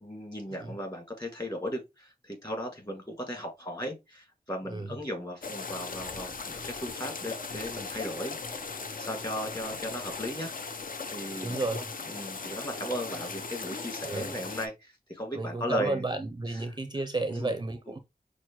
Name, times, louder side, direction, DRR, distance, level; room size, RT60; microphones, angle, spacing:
voice 1, 0.0-8.4 9.0-10.5 11.1-11.6 12.1-16.0 17.3-17.5, equal, 25° left, 1.9 m, -36 dB
sound 1, 5.4-14.7, left 4 dB, 65° left, 0.6 m, -38 dB
voice 2, 11.4-11.9 14.0-14.3 15.3-18.0, right 2 dB, 30° right, 0.4 m, -32 dB
6.0 x 2.1 x 2.9 m
wide cardioid pair, 55°, 16 cm